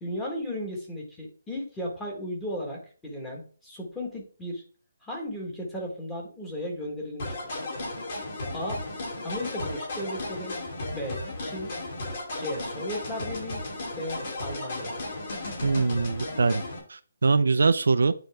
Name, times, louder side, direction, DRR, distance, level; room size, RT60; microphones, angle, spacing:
voice 1, 0.0-4.6 5.0-7.6 8.5-8.8 9.2-10.5 10.9-11.7 12.4-13.6 13.9-15.0, left 1 dB, 5° left, -2 dB, 1.3 m, -35 dB
sound 1, 7.2-16.8, left 2 dB, 35° left, 2.5 m, -35 dB
voice 2, 15.6-16.6 16.9-18.1, right 4 dB, 75° right, 11 dB, 0.5 m, -23 dB
9.1 x 3.9 x 3.4 m, 0.41 s
hypercardioid pair, 175°, 0 cm